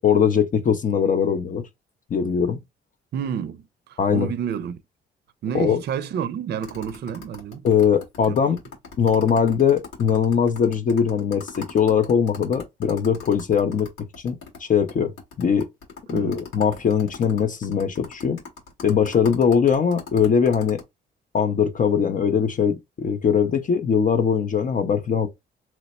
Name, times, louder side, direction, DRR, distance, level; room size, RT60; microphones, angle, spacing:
voice 1, 0.0-1.6 2.1-2.6 4.0-4.3 5.5-5.8 7.6-8.6 9.0-13.9 14.2-15.1 15.4-15.7 16.1-18.4 18.8-20.8 21.3-25.3, left 7 dB, 40° left, 0.5 m, -21 dB
voice 2, 3.1-4.8 5.4-7.7 8.3-8.4 16.1-16.4, right 8 dB, 55° right, 0.4 m, -29 dB
sound 1, 6.6-14.6 14.9-15.0 15.2-20.8, left 5 dB, 90° left, 1.7 m, -39 dB
3.0 x 2.0 x 4.1 m
cardioid pair, 90°, 20 cm